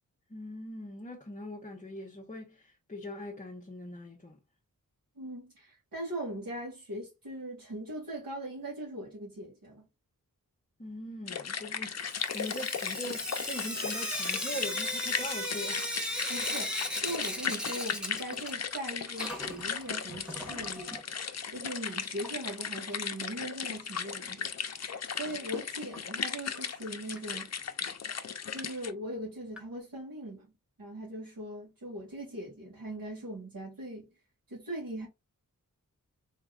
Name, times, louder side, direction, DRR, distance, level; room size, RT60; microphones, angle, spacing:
voice 1, 0.3-4.4 10.8-15.9, left 1 dB, 20° left, 0.9 m, -42 dB
voice 2, 5.2-9.9 16.3-16.8 17.0-21.0 21.5-27.5 28.5-30.5 30.8-34.1 34.5-35.1, right 1 dB, 80° right, 2.2 m, -40 dB
sound 1, 11.3-28.9, left 7 dB, 50° left, 0.6 m, -36 dB
Sink (filling or washing) / Drip, 12.1-18.8 19.1-21.0 22.2-22.3 22.6-22.7 22.9-23.0 25.9-26.0 26.5-26.6 27.2-27.3 27.9-28.0 28.6-28.7 29.6-29.7, equal, ahead, 1.1 m, -37 dB
4.7 x 3.6 x 2.4 m
wide cardioid pair, 95°, 34 cm